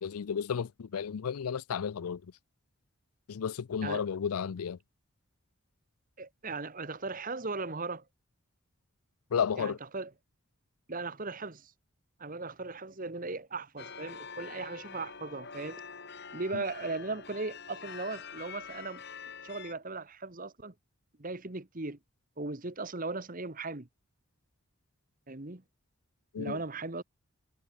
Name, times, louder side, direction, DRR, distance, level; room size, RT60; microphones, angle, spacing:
voice 1, 0.0-2.3 3.3-4.8 9.3-9.8 16.5-16.6 26.3-26.6, left 7 dB, 85° left, 0.5 m, -33 dB
voice 2, 6.2-8.0 9.6-10.1 10.9-11.7 12.2-15.8 16.3-19.0 19.4-20.7 21.2-22.0 22.4-23.9 25.3-25.6 26.4-27.0, right 3 dB, 40° right, 1.4 m, -38 dB
sound 1, 13.8-19.7, left 6 dB, 50° left, 4.1 m, -46 dB
head